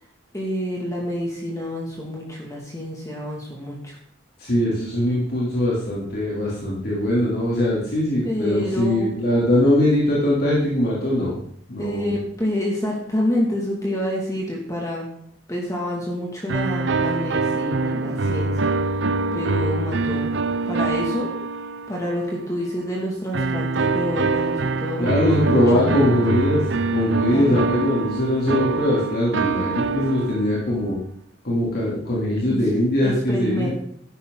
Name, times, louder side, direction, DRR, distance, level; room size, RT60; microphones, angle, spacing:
voice 1, 0.3-4.0 8.2-9.4 11.8-15.1 15.5-18.7 19.3-21.3 21.9-26.1 27.3-27.6 32.5-32.6 33.0-33.7, left 1 dB, 15° left, -3 dB, 2.5 m, -28 dB
voice 2, 4.4-11.4 11.7-12.1 25.0-31.0 31.4-33.7, left 1 dB, 55° left, -6 dB, 3.3 m, -21 dB
sound 1, 16.5-22.3 23.3-30.7, right 3 dB, 70° right, 0.7 m, -24 dB
13.5 x 11.5 x 4.0 m, 0.65 s
head